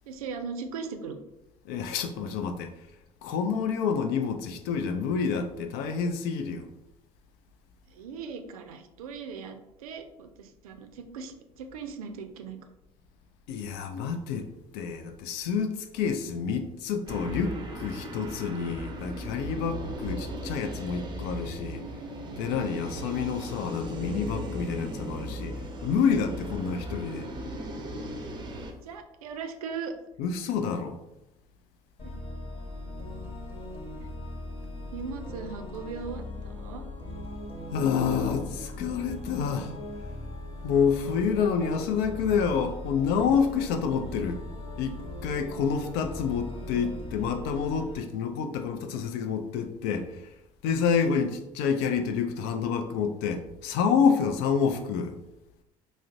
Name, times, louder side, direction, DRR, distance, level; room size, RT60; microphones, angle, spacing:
voice 1, 0.1-1.2 7.9-12.6 28.8-29.9 32.0-32.1 34.9-36.8, right 5 dB, 70° right, 0.4 m, -39 dB
voice 2, 1.6-2.7 3.2-6.7 13.5-21.8 22.4-25.6 25.8-27.3 30.2-31.0 37.7-39.7 40.6-44.4 44.8-50.3 50.6-55.2, left 6 dB, 55° left, 0.4 m, -28 dB
sound 1, 17.1-28.7, equal, 25° right, 0.6 m, -37 dB
sound 2, 32.0-48.0, left 2 dB, 30° left, 1.0 m, -39 dB
4.8 x 2.0 x 2.5 m
figure-of-eight pair, 60°, 19 cm